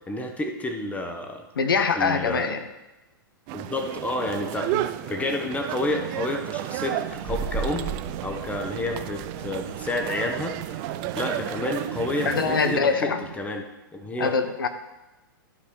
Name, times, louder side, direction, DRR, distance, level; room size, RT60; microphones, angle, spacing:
voice 1, 0.1-1.4 1.9-2.5 3.5-4.7 5.1-7.9 8.2-10.8 11.2-13.6 13.9-14.3, left 2 dB, 10° left, 4 dB, 1.2 m, -30 dB
voice 2, 1.6-2.6 4.7-4.9 12.2-13.2 14.2-14.7, left 5 dB, 75° left, 9 dB, 0.9 m, -23 dB
sound 1, 3.5-12.8, right 14 dB, 40° right, 0.5 m, -33 dB
sound 2, 5.8-13.4, right 8 dB, 70° right, 1.5 m, -41 dB
sound 3, 7.2-11.5, right 5 dB, 20° right, 1.6 m, -36 dB
11.5 x 4.9 x 4.3 m, 1.0 s
figure-of-eight pair, 105°, 12 cm